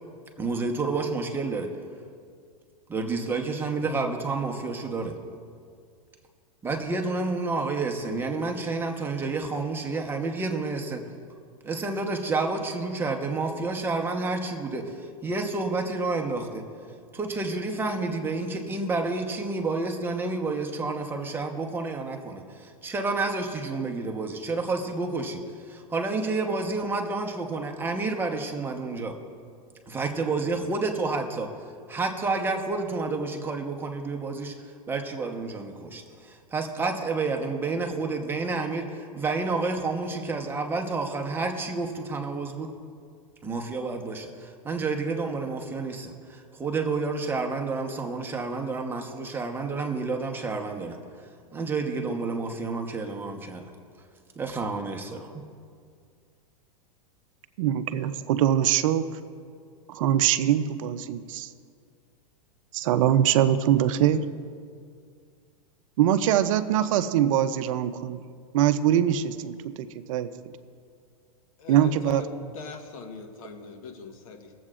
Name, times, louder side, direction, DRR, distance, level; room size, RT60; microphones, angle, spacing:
voice 1, 0.4-1.7 2.9-5.2 6.6-11.0 11.6-16.6 17.1-29.1 29.9-31.5 31.9-34.5 34.9-42.7 43.4-51.0 51.5-53.6 54.4-55.4, right 3 dB, 10° right, 2 dB, 1.0 m, -30 dB
voice 2, 57.6-59.2 59.9-61.5 62.7-64.3 66.0-68.2 68.5-70.3 71.7-72.2, right 10 dB, 60° right, 11 dB, 0.6 m, -23 dB
voice 3, 71.6-74.5, left 3 dB, 70° left, 5 dB, 1.3 m, -41 dB
22.5 x 7.7 x 2.5 m, 2.2 s
hypercardioid pair, 135°, 19 cm